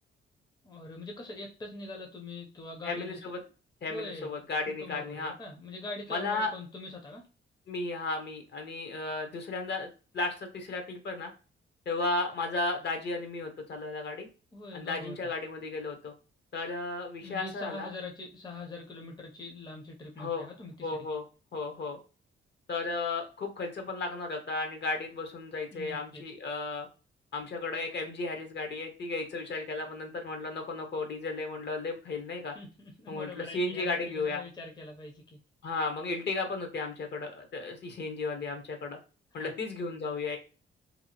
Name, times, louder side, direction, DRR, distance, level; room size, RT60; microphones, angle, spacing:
voice 1, 0.6-3.2 3.9-4.3 4.7-7.3 14.5-15.3 17.2-21.1 25.7-26.2 32.5-35.4 39.4-39.5, left 2 dB, 20° left, 2 dB, 0.5 m, -43 dB
voice 2, 2.8-3.4 3.8-5.3 6.1-6.5 7.7-9.9 10.1-11.3 11.9-14.3 14.7-16.1 16.5-17.9 20.2-20.5 20.8-21.2 21.5-22.0 22.7-26.9 27.3-32.6 33.1-34.4 35.6-39.0 39.3-40.4, left 3 dB, 55° left, 4 dB, 0.7 m, -34 dB
2.7 x 2.4 x 2.7 m, 0.34 s
wide cardioid pair, 140°, 21 cm